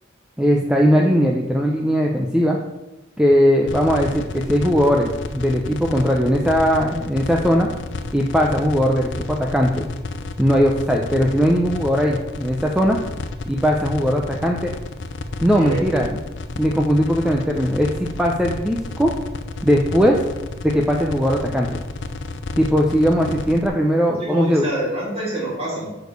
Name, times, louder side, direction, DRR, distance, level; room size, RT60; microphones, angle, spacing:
voice 1, 0.4-2.6 3.2-7.7 8.1-9.9 10.4-13.0 13.5-14.7 15.4-16.2 16.6-19.1 19.6-20.2 20.6-21.7 22.6-24.7, equal, 5° right, 0 dB, 0.5 m, -19 dB
sound 1, 3.7-23.7, left 3 dB, 70° left, 0.6 m, -31 dB
voice 2, 24.2-25.9, right 1 dB, 30° right, -5 dB, 2.9 m, -26 dB
6.3 x 5.0 x 6.6 m, 1.1 s
head